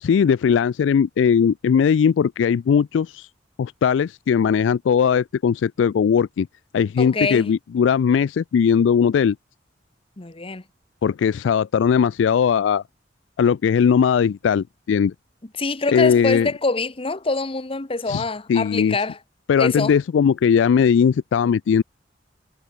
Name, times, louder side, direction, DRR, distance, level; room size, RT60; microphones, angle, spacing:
voice 1, 0.0-3.3 3.6-6.5 6.7-9.4 11.0-12.8 13.4-15.1 15.9-16.5 18.1-18.2 18.5-19.0 19.5-21.8, left 7 dB, 90° left, 0.3 m, -19 dB
voice 2, 7.0-7.5 10.2-10.6 15.6-19.2 19.6-19.9, left 3 dB, 30° left, 1.1 m, -25 dB
head